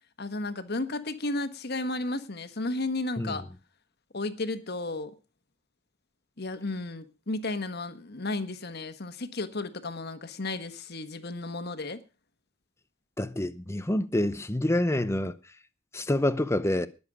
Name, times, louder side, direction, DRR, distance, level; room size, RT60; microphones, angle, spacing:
voice 1, 0.2-3.5 4.1-5.1 6.4-12.0, left 2 dB, 55° left, 1.4 m, -33 dB
voice 2, 13.2-15.4 15.9-16.9, left 1 dB, 15° left, 0.7 m, -27 dB
20.0 x 7.1 x 5.0 m
head